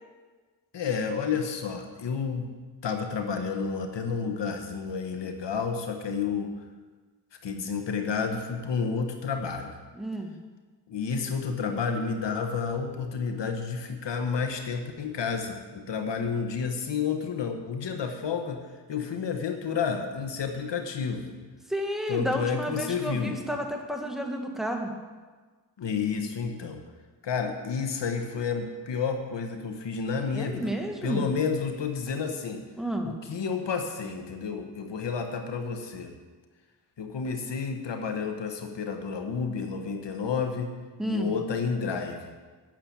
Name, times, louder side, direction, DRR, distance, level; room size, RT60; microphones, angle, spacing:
voice 1, 0.7-2.5 2.8-6.5 7.4-9.7 10.9-18.6 18.9-21.3 22.1-23.4 25.8-26.8 27.2-30.7 31.0-32.6 33.0-36.1 37.0-40.7 41.0-42.3, left 5 dB, 80° left, 5 dB, 1.2 m, -30 dB
voice 2, 9.9-10.3 21.7-24.9 30.3-31.3 32.8-33.1 41.0-41.3, equal, ahead, 2 dB, 1.8 m, -31 dB
8.9 x 6.9 x 8.5 m, 1.4 s
cardioid pair, 55°, 42 cm